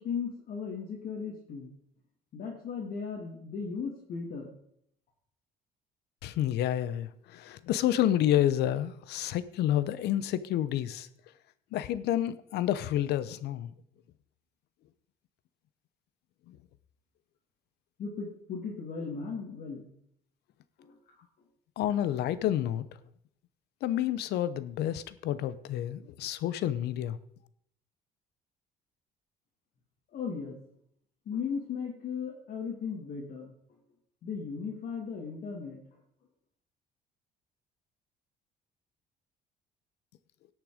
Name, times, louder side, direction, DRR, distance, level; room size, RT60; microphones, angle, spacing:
voice 1, 0.0-1.7 2.3-4.5 18.0-19.9 20.8-21.0 30.1-30.6 31.3-33.5 34.2-35.8, left 5 dB, 60° left, -3 dB, 2.7 m, -36 dB
voice 2, 6.2-11.1 11.7-13.7 16.5-16.6 21.8-22.8 23.8-27.2, left 12 dB, 75° left, 15 dB, 0.8 m, -29 dB
17.5 x 6.6 x 5.0 m, 0.70 s
cardioid pair, 110°, 17 cm